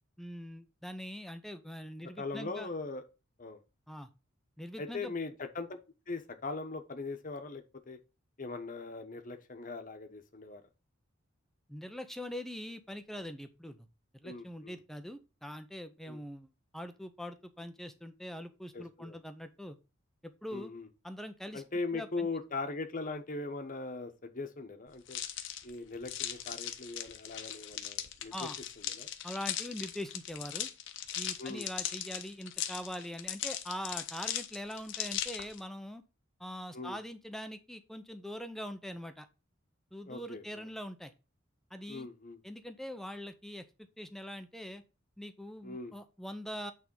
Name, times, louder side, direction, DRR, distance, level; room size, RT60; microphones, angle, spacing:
voice 1, 0.2-2.7 3.9-4.1 4.6-5.1 11.7-13.8 14.1-19.8 20.2-20.7 21.0-21.6 21.9-22.3 28.3-28.6 29.2-30.7 31.2-36.0 36.4-39.3 39.9-41.1 41.7-42.1 42.4-44.8 45.2-46.7, equal, ahead, 0.6 m, -43 dB
voice 2, 2.2-3.0 3.4-3.6 4.8-5.7 6.1-8.0 8.4-10.6 14.2-14.8 16.1-16.2 18.7-19.2 20.5-20.9 21.5-25.2 25.6-28.5 28.9-29.1 31.4-31.7 36.7-37.0 40.1-40.7 41.9-42.4 45.6-45.9, left 3 dB, 40° left, 1.1 m, -40 dB
sound 1, 25.1-35.6, left 10 dB, 65° left, 1.0 m, -39 dB
8.9 x 3.6 x 5.3 m
head